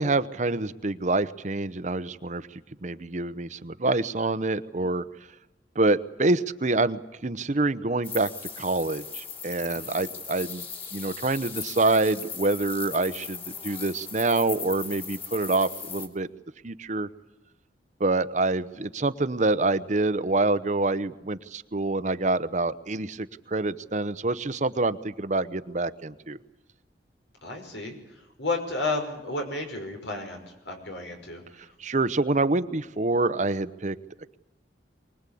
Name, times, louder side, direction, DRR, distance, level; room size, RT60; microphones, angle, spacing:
voice 1, 0.0-5.0 5.7-8.3 8.6-10.6 10.9-16.3 16.6-17.1 18.0-26.4 31.8-34.0, right 2 dB, 45° right, 14 dB, 0.9 m, -26 dB
sound 1, 8.0-16.1, left 6 dB, 35° left, 3.0 m, -38 dB
voice 2, 9.7-10.0 27.4-28.0 28.4-31.4, left 2 dB, 90° left, 4 dB, 5.7 m, -32 dB
24.5 x 20.0 x 8.5 m, 0.99 s
head